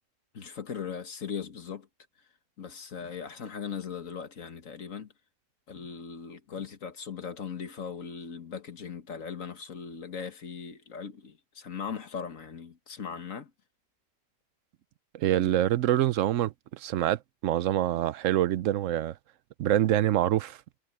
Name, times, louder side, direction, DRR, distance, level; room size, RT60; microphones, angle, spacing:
voice 1, 0.3-1.9 2.6-5.1 5.7-13.5, left 6 dB, 85° left, 2.0 m, -39 dB
voice 2, 15.1-19.1 19.6-20.6, right 12 dB, 75° right, 1.0 m, -26 dB
omnidirectional pair, 1.3 m